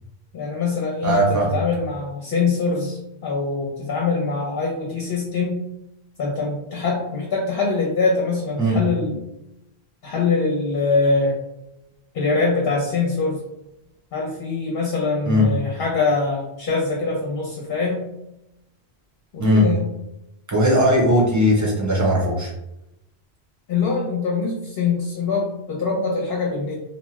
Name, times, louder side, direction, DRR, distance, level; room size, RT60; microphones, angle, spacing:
voice 1, 0.3-5.7 6.2-9.2 10.0-11.4 12.1-13.4 14.1-18.1 19.3-19.9 23.7-26.8, left 4 dB, 60° left, -3 dB, 0.9 m, -23 dB
voice 2, 1.0-1.5 8.6-8.8 15.3-15.5 19.4-19.7 20.5-22.5, equal, 20° right, -3 dB, 0.7 m, -18 dB
2.7 x 2.2 x 3.1 m, 0.88 s
omnidirectional pair, 1.1 m